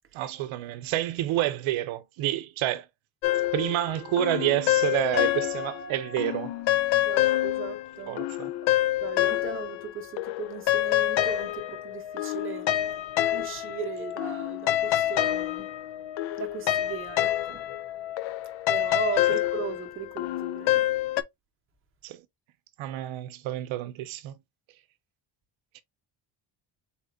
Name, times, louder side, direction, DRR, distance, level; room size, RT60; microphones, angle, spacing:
voice 1, 0.1-2.9 3.5-6.5 8.1-8.5 22.0-22.2 22.8-24.3 25.7-25.8, right 14 dB, 80° right, 0.6 m, -29 dB
sound 1, 3.2-5.8 6.2-9.9 10.2-21.2, left 14 dB, 75° left, 0.5 m, -27 dB
Piano, 5.1-7.4, right 2 dB, 15° left, 0.6 m, -42 dB
voice 2, 6.9-8.2 8.6-8.7 9.0-12.7 13.3-15.7 16.4-17.7 18.7-20.8, right 6 dB, 25° right, 0.8 m, -37 dB
4.2 x 3.5 x 2.5 m
cardioid pair, 170°, 47 cm